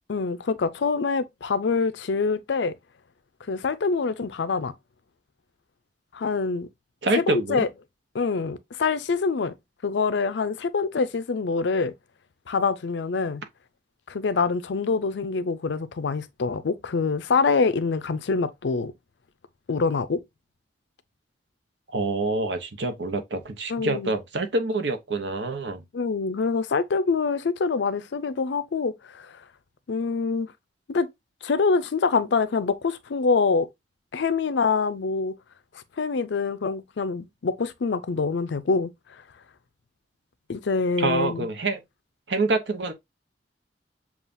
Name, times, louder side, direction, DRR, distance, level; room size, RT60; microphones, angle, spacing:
voice 1, 0.1-2.7 3.5-4.7 6.1-6.7 7.1-7.7 8.1-9.5 9.8-11.9 12.5-13.4 14.1-18.9 19.7-20.2 23.7-24.1 25.9-29.3 29.9-30.5 30.9-31.1 31.4-33.7 34.1-35.3 36.0-38.9 40.5-41.5, left 4 dB, 90° left, 0.5 m, -25 dB
voice 2, 7.0-7.7 21.9-25.8 41.0-41.8 42.3-42.9, right 2 dB, 80° right, 0.8 m, -26 dB
7.1 x 2.4 x 2.5 m
head